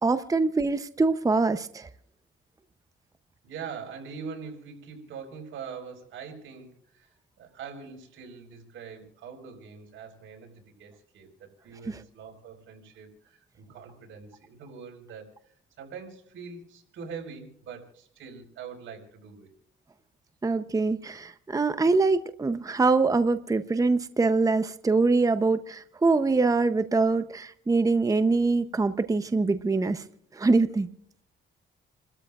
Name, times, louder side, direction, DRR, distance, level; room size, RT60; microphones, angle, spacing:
voice 1, 0.0-1.9 11.9-12.0 20.4-30.0 30.3-30.9, right 3 dB, 15° right, 11 dB, 0.7 m, -24 dB
voice 2, 3.4-19.5, right 6 dB, 80° right, 2 dB, 4.9 m, -43 dB
30.0 x 13.5 x 2.5 m, 0.65 s
cardioid pair, 90°, 20 cm